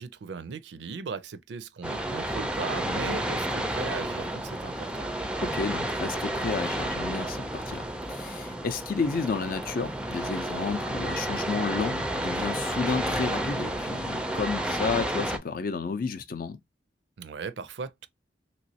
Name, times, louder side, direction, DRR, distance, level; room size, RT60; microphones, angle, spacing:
voice 1, 0.0-5.1 17.2-18.1, right 5 dB, 65° right, 0.4 m, -37 dB
sound 1, 1.8-15.4, right 1 dB, 5° right, 0.4 m, -31 dB
voice 2, 5.4-16.6, left 5 dB, 50° left, 0.4 m, -32 dB
3.0 x 3.0 x 2.7 m
head